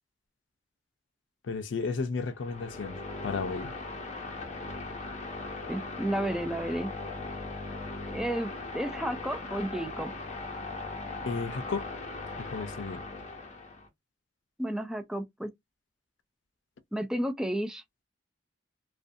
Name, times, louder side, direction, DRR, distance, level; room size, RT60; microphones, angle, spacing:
voice 1, 1.5-3.7 11.3-11.9 12.4-13.0, left 4 dB, 85° left, 0.5 m, -33 dB
sound 1, 2.3-13.9, left 3 dB, 40° left, 0.7 m, -39 dB
voice 2, 5.7-6.9 8.1-10.1 14.6-15.5 16.9-17.8, right 1 dB, 5° right, 0.3 m, -32 dB
2.5 x 2.2 x 2.5 m
head